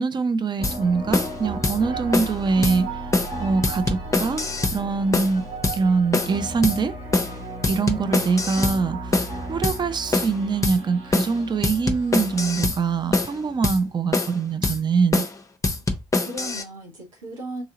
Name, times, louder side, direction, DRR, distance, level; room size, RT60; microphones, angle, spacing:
voice 1, 0.0-2.9 3.4-4.4 4.7-5.4 5.7-6.9 7.7-9.0 9.5-15.2, right 4 dB, 25° right, 0.5 m, -23 dB
sound 1, 0.6-0.8 1.1-1.3 1.6-1.8 2.1-2.4 2.6-2.8 3.1-3.3 3.6-4.8 5.1-5.4 5.6-5.8 6.1-6.4 6.6-6.8 7.1-7.4 7.6-8.8 9.1-9.3 9.6-9.8 10.1-10.4 10.6-10.8 11.1-11.4 11.6-12.8 13.1-13.3 13.6-13.8 14.1-14.4 14.6-14.8 15.1-15.3 15.6-16.6, left 2 dB, 20° left, 0.8 m, -24 dB
sound 2, 0.6-14.0, right 2 dB, 75° right, 2.3 m, -35 dB
voice 2, 16.2-17.6, right 2 dB, 90° right, 1.0 m, -37 dB
3.9 x 2.8 x 3.7 m
figure-of-eight pair, 45°, 16 cm